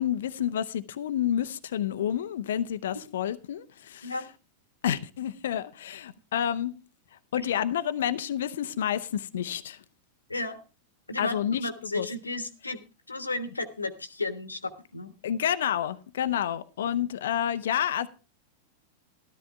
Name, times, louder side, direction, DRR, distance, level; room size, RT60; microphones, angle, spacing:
voice 1, 0.0-4.1 4.8-6.7 7.3-9.8 11.2-11.6 11.9-12.1 15.2-18.1, left 10 dB, 60° left, 0.7 m, -29 dB
voice 2, 11.1-12.8 13.1-15.1, left 2 dB, 80° left, 1.2 m, -33 dB
13.5 x 13.0 x 3.4 m
figure-of-eight pair, 90°, 0 cm